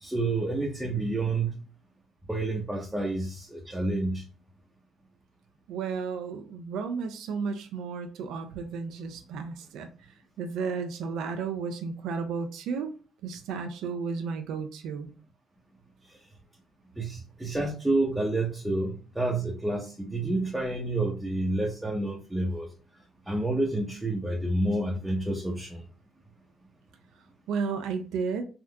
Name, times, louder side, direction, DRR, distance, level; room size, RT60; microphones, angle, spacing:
voice 1, 0.0-1.5 2.3-4.2 17.0-22.7 23.3-25.8, right 2 dB, 5° right, -2 dB, 0.8 m, -29 dB
voice 2, 5.7-9.9 10.4-12.9 13.2-15.1 27.5-28.4, right 5 dB, 85° right, 6 dB, 0.4 m, -33 dB
3.5 x 2.6 x 2.2 m, 0.36 s
cardioid pair, 80°, 0 cm